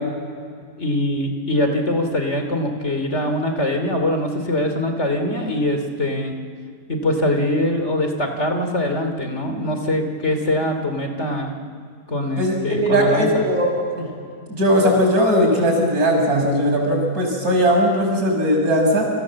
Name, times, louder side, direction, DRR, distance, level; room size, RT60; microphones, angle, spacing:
voice 1, 0.8-6.3 6.9-11.5 12.1-13.5, left 1 dB, 45° left, 5 dB, 3.2 m, -23 dB
voice 2, 12.4-14.1 14.5-19.1, equal, 70° right, 1 dB, 6.7 m, -18 dB
29.5 x 26.5 x 7.5 m, 2.2 s
omnidirectional pair, 1.7 m